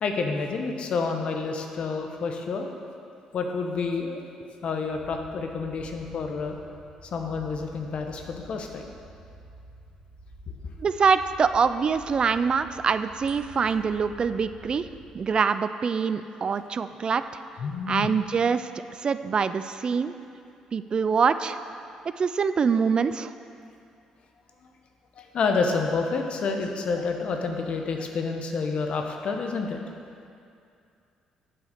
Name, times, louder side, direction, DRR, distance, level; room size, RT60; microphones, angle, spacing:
voice 1, 0.0-2.7 3.3-4.2 4.6-6.6 7.1-8.8 17.6-18.1 25.2-29.8, left 4 dB, 60° left, 3 dB, 1.0 m, -29 dB
sound 1, 4.9-15.1, right 1 dB, 65° right, 1.8 m, -49 dB
voice 2, 10.8-14.9 15.1-17.2 17.9-18.7 19.0-20.1 20.7-21.6 22.2-23.3, right 5 dB, 45° right, 12 dB, 0.3 m, -24 dB
8.7 x 4.8 x 6.5 m, 2.5 s
supercardioid pair, 60°, 2 cm